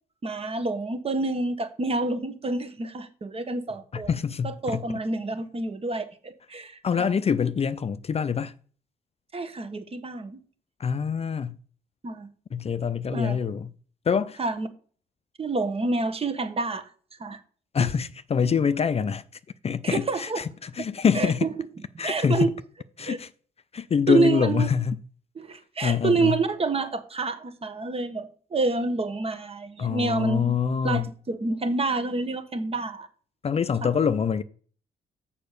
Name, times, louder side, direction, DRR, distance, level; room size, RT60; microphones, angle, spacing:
voice 1, 0.2-4.1 4.4-7.1 9.3-10.4 12.0-12.3 13.1-13.4 14.4-14.7 15.4-16.9 17.2-17.4 19.8-20.4 21.1-21.5 22.0-22.5 23.1-23.2 24.1-24.7 25.4-30.5 30.8-33.1, right 3 dB, 35° right, 1.3 m, -28 dB
voice 2, 3.9-5.0 6.8-8.5 10.8-11.6 12.5-13.7 14.1-14.4 17.7-19.2 19.6-21.5 22.0-22.5 23.0-23.3 23.7-25.0 25.8-26.4 29.8-31.1 33.4-34.4, left 6 dB, 40° left, 0.5 m, -25 dB
6.7 x 5.2 x 6.6 m
supercardioid pair, 65°, 17 cm